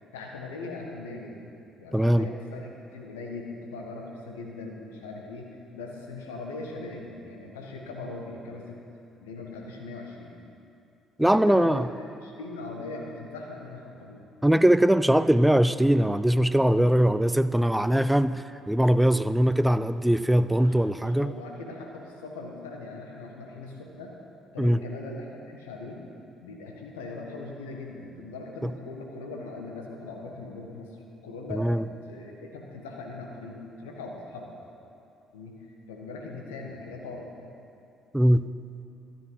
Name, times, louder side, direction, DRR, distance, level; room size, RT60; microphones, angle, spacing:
voice 1, 0.1-1.4 1.8-8.8 9.2-10.3 11.2-14.2 20.6-24.2 24.5-26.0 26.4-31.0 31.2-31.8 32.1-34.5 35.3-35.6 35.9-37.3, left 3 dB, 85° left, 1 dB, 1.4 m, -40 dB
voice 2, 1.9-2.3 11.2-11.9 14.4-21.3 24.6-24.8 28.6-28.7 31.5-31.9 38.1-38.5, right 1 dB, 5° right, 13 dB, 0.5 m, -21 dB
13.0 x 10.5 x 4.8 m, 2.7 s
hypercardioid pair, 50°, 0 cm